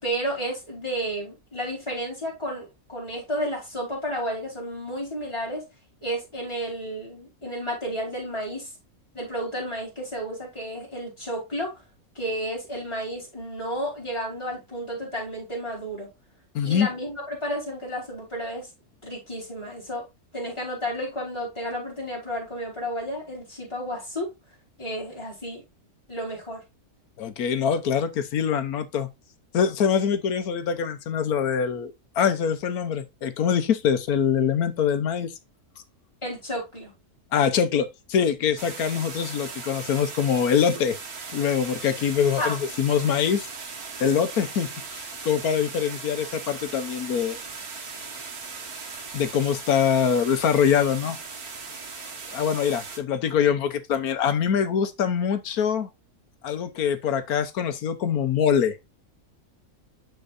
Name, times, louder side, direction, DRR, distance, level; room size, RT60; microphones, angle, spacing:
voice 1, 0.0-5.6 6.0-8.7 9.1-11.8 12.1-16.1 16.6-18.7 19.0-20.1 20.3-24.3 24.8-25.6 26.1-26.6 36.2-36.9 42.4-42.6, equal, 20° left, 4.6 m, -32 dB
voice 2, 16.5-16.9 27.2-29.1 29.5-35.3 37.3-41.0 41.3-43.5 44.0-44.7 44.9-47.4 49.1-51.2 52.3-55.9 56.4-58.8, left 7 dB, 80° left, 1.4 m, -24 dB
sound 1, 38.6-53.0, right 4 dB, 85° right, 2.0 m, -38 dB
11.5 x 4.5 x 2.6 m
omnidirectional pair, 1.6 m